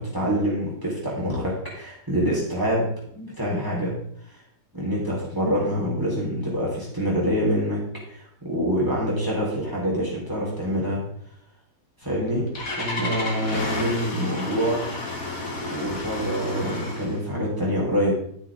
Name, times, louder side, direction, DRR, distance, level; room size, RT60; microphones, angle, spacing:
voice 1, 0.0-2.9 3.1-3.9 4.7-7.8 8.1-11.0 12.0-12.5 12.7-14.8 15.7-18.1, equal, 10° right, -4 dB, 4.1 m, -26 dB
Engine starting, 12.0-17.2, left 2 dB, 55° left, 2.6 m, -31 dB
11.5 x 9.3 x 3.7 m, 0.67 s
omnidirectional pair, 1.8 m